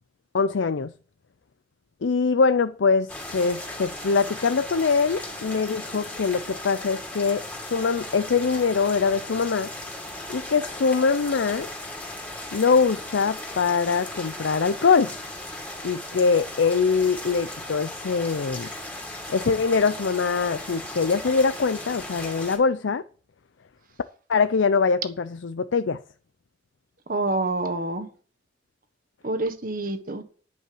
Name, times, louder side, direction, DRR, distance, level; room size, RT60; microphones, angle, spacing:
voice 1, 0.3-0.9 2.0-7.4 7.7-9.7 10.3-11.7 12.5-15.1 15.8-18.7 19.3-23.0 24.3-26.0, left 5 dB, 80° left, 0.5 m, -23 dB
sound 1, 3.1-22.6, left 1 dB, 10° left, 2.4 m, -37 dB
voice 2, 27.1-28.1 29.2-30.2, right 2 dB, 50° right, 1.4 m, -27 dB
10.5 x 5.5 x 7.7 m
head